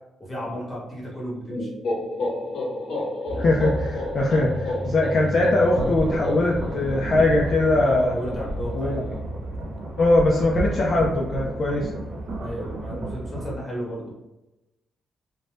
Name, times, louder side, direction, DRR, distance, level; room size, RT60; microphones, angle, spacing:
voice 1, 0.2-1.7 8.1-9.2 12.4-14.1, equal, 15° left, -4 dB, 1.1 m, -34 dB
sound 1, 1.5-9.2, left 2 dB, 70° left, 0.7 m, -32 dB
sound 2, 3.3-13.6, right 1 dB, 45° right, 0.4 m, -35 dB
voice 2, 3.4-8.2 8.7-9.0 10.0-11.9, left 2 dB, 45° left, -2 dB, 0.4 m, -21 dB
sound 3, 5.7-13.5, right 1 dB, 90° right, 0.7 m, -33 dB
2.5 x 2.1 x 3.2 m, 0.96 s
cardioid pair, 135°, 0 cm